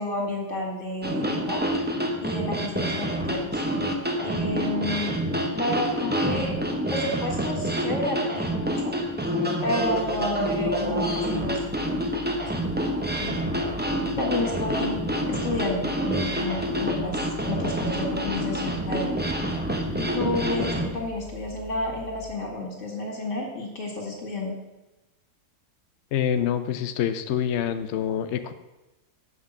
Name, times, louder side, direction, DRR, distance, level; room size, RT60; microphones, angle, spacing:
voice 1, 0.0-1.6 2.2-3.6 4.2-5.2 5.5-6.5 6.9-8.9 9.6-12.1 12.6-12.7 13.2-13.4 14.2-15.0 15.3-19.2 20.0-24.6, left 1 dB, 45° left, 0 dB, 2.4 m, -30 dB
sound 1, 1.0-20.9, equal, 10° right, 0.5 m, -27 dB
sound 2, 9.8-22.4, left 4 dB, 30° left, 1.8 m, -43 dB
voice 2, 26.1-28.5, left 9 dB, 70° left, 9 dB, 0.6 m, -27 dB
7.8 x 5.9 x 6.5 m, 1.0 s
omnidirectional pair, 1.7 m